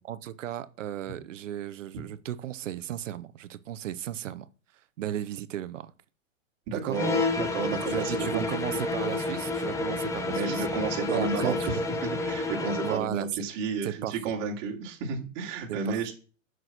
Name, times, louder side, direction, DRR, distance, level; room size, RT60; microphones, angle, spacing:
voice 1, 0.1-4.5 5.0-5.9 6.8-7.0 7.9-10.6 11.1-11.8 12.8-13.4 13.8-14.1 15.7-16.1, right 11 dB, 65° right, 1.0 m, -35 dB
voice 2, 6.7-8.8 10.3-11.8 12.2-16.1, right 5 dB, 35° right, 3.0 m, -32 dB
sound 1, 6.9-13.1, left 3 dB, 10° left, 0.7 m, -30 dB
7.7 x 6.3 x 6.0 m
hypercardioid pair, 140°, 40 cm